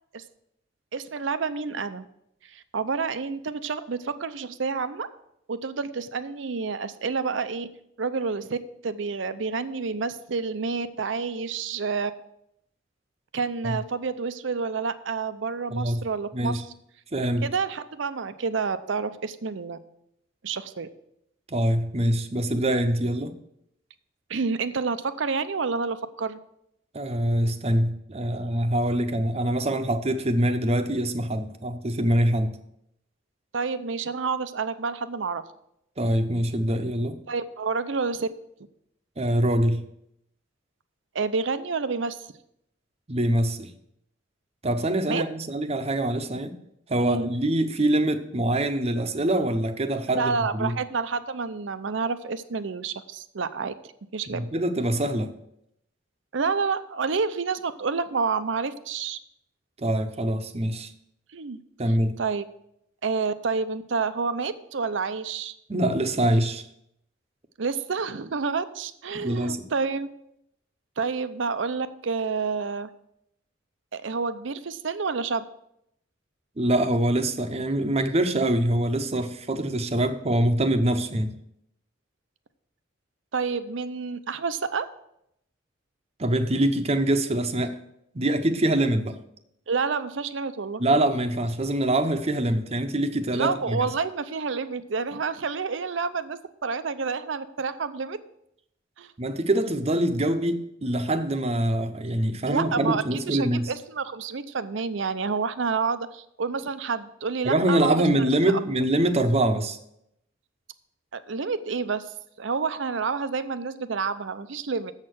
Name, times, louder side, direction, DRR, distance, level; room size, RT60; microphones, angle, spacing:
voice 1, 0.9-2.1 2.5-5.1 5.5-7.7 8.0-8.6 8.8-12.1 13.3-16.6 17.4-19.8 20.4-20.9 24.3-26.4 33.5-35.4 37.3-38.3 41.1-42.3 45.1-45.2 47.0-47.3 50.1-53.7 54.1-54.4 56.3-59.2 61.3-61.6 62.2-62.4 63.0-65.6 67.6-70.1 71.0-72.9 73.9-75.4 83.3-84.9 89.7-90.8 93.3-98.2 99.0-99.1 102.5-108.6 111.1-112.1 112.4-114.9, right 5 dB, 70° right, 12 dB, 0.6 m, -29 dB
voice 2, 15.7-16.0 16.3-16.6 17.1-17.5 21.5-23.3 26.9-32.6 36.0-37.2 39.2-39.8 43.1-43.7 44.6-46.6 46.9-50.8 54.3-55.3 59.8-60.9 61.8-62.2 65.7-66.7 69.2-69.6 76.6-81.3 86.2-87.8 88.1-89.2 90.8-93.9 99.2-103.7 107.4-109.8, right 1 dB, 35° right, 8 dB, 0.8 m, -24 dB
7.4 x 6.5 x 7.7 m, 0.77 s
head